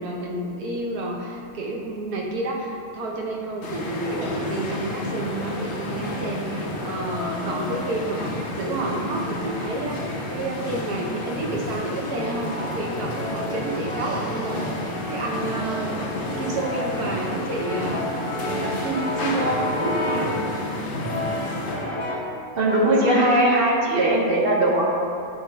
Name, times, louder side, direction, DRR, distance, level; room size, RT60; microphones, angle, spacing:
voice 1, 0.0-16.1 16.4-18.1 18.4-20.3, right 2 dB, 80° right, -1 dB, 1.3 m, -30 dB
sound 1, 3.6-21.9, left 1 dB, 50° left, 0.7 m, -31 dB
Brass instrument, 6.3-8.3 9.0-11.1 11.7-20.4 21.0-22.4 22.7-23.5, left 1 dB, 20° left, 1.5 m, -33 dB
voice 2, 22.6-24.9, right 1 dB, 50° right, -3 dB, 0.7 m, -19 dB
8.8 x 3.5 x 3.4 m, 2.5 s
omnidirectional pair, 1.7 m